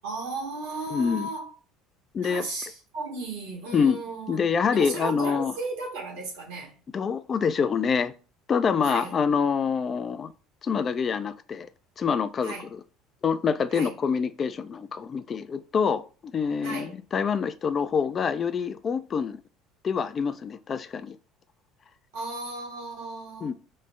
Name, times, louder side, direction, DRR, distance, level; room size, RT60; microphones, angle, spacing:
voice 1, 0.0-1.5 2.2-4.4 4.7-6.8 8.8-9.1 12.4-12.7 13.7-13.9 16.6-17.0 22.1-23.5, right 3 dB, 75° right, 1.2 m, -35 dB
voice 2, 0.9-1.3 2.1-2.4 3.7-4.0 4.3-5.5 6.9-8.1 8.5-10.3 10.6-11.7 12.0-12.5 13.2-16.0 16.3-19.4 19.8-21.2 23.4-23.5, left 6 dB, 40° left, 0.3 m, -26 dB
3.2 x 2.0 x 3.3 m
hypercardioid pair, 65°, 0 cm